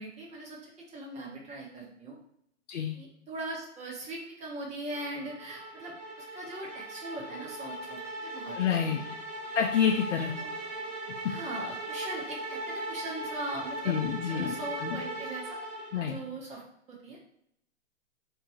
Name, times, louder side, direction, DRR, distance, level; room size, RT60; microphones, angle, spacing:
voice 1, 0.0-2.2 2.9-8.6 8.8-9.0 10.2-10.5 11.2-14.0 14.3-15.6 16.0-16.6 16.9-17.2, right 2 dB, 20° right, -2 dB, 1.0 m, -40 dB
sound 1, 4.9-16.3, right 1 dB, 75° right, 1.4 m, -39 dB
voice 2, 8.6-9.0 9.5-10.3 13.9-14.5 14.8-15.0 15.9-16.1, left 8 dB, 70° left, 1 dB, 0.6 m, -28 dB
3.5 x 2.4 x 4.3 m, 0.73 s
hypercardioid pair, 125°, 37 cm